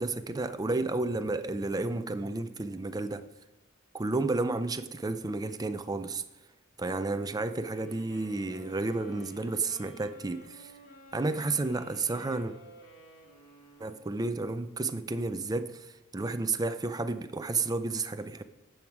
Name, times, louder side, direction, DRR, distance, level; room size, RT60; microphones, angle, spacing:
voice 1, 0.0-3.2 3.9-6.2 6.8-10.7 11.1-12.5 13.8-18.4, right 3 dB, 20° right, 0.5 m, -31 dB
sound 1, 7.7-14.2, equal, 45° left, 2.1 m, -53 dB
11.0 x 7.9 x 4.7 m
head